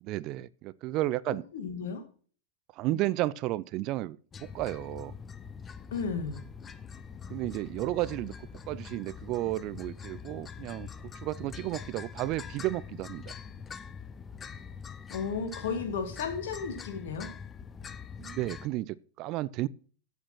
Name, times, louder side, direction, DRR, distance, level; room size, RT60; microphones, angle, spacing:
voice 1, 0.0-1.4 2.7-5.1 7.3-10.9 11.2-13.3 18.2-19.7, right 16 dB, 45° right, 0.4 m, -33 dB
voice 2, 1.3-2.0 2.9-3.0 5.9-6.4 15.1-17.3, left 5 dB, 65° left, 1.8 m, -34 dB
sound 1, 4.3-18.7, left 6 dB, 20° left, 0.8 m, -44 dB
8.6 x 8.0 x 5.9 m
hypercardioid pair, 100°, 0 cm